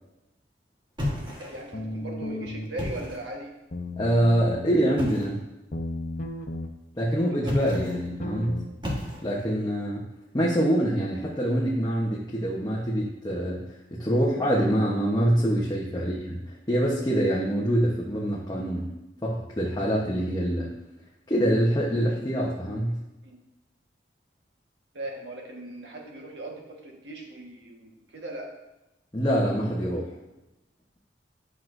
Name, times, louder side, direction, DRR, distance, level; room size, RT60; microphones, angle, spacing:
sound 1, 1.0-1.8 2.6-3.3 5.0-5.4 7.4-8.1 8.8-9.5, left 1 dB, 25° right, 1.3 m, -33 dB
voice 1, 1.1-3.5 7.4-7.9 16.0-16.1 23.2-23.4 24.9-28.5, right 1 dB, 75° right, 0 dB, 1.4 m, -39 dB
sound 2, 1.7-2.7 3.7-4.7 5.7-6.7 7.7-8.7, left 2 dB, 45° left, 0.8 m, -34 dB
voice 2, 4.0-5.4 7.0-8.6 9.2-10.1 10.3-18.9 19.2-20.7 21.3-23.0 29.1-30.1, equal, 20° left, -5 dB, 1.0 m, -25 dB
10.0 x 6.1 x 2.6 m, 0.95 s
head